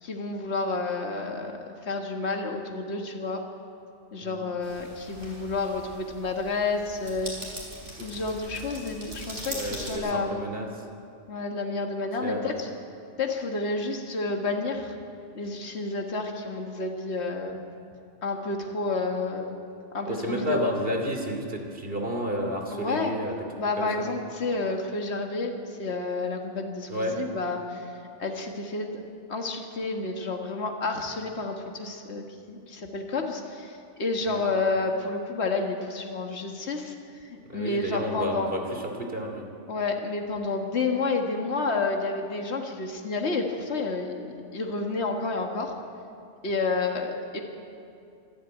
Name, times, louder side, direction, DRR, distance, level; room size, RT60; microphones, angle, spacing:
voice 1, 0.0-1.5 1.8-3.4 4.1-7.3 8.0-10.5 11.3-12.7 13.2-15.0 15.3-17.6 18.2-19.6 19.9-20.7 22.7-23.1 23.6-27.9 28.2-28.9 29.3-38.5 39.7-45.7 46.4-47.4, left 3 dB, 65° left, 2 dB, 1.9 m, -30 dB
sound 1, 4.6-9.9, right 1 dB, 90° right, 5.9 m, -41 dB
voice 2, 9.5-10.8 12.2-12.6 20.1-23.4 23.8-24.1 26.9-27.2 34.2-34.5 37.4-39.5, equal, 55° right, 3 dB, 2.8 m, -31 dB
26.0 x 12.0 x 9.2 m, 2.5 s
omnidirectional pair, 1.2 m